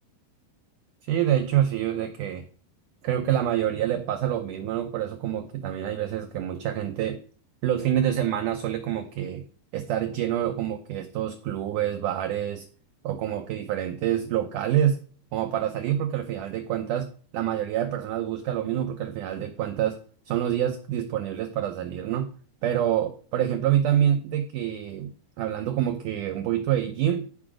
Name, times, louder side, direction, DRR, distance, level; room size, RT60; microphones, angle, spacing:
voice 1, 1.0-2.4 3.0-7.2 7.6-9.4 9.7-12.6 13.0-15.0 15.3-17.1 17.3-20.0 20.3-22.3 22.6-25.1 25.4-27.3, right 11 dB, 85° right, 6 dB, 1.8 m, -26 dB
14.0 x 4.9 x 4.9 m, 0.42 s
omnidirectional pair, 4.6 m